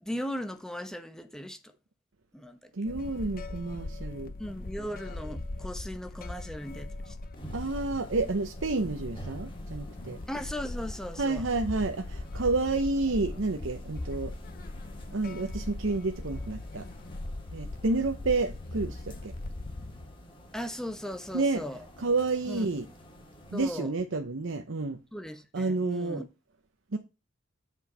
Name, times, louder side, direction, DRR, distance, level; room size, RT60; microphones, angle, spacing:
voice 1, 0.0-1.6 2.3-2.7 4.4-7.2 10.3-11.5 20.5-21.9 22.5-22.7 23.5-23.9 25.1-26.3, equal, 5° left, 1.0 m, -37 dB
voice 2, 2.7-4.3 7.5-10.2 11.2-14.3 15.1-16.8 17.5-19.4 21.3-21.6 22.0-22.8 23.5-25.0 25.5-26.2 26.9-27.0, right 3 dB, 75° right, 0.8 m, -30 dB
sound 1, 2.8-20.2, left 2 dB, 50° left, 0.8 m, -40 dB
sound 2, 7.3-23.7, equal, 25° left, 2.0 m, -51 dB
8.1 x 4.6 x 5.4 m
head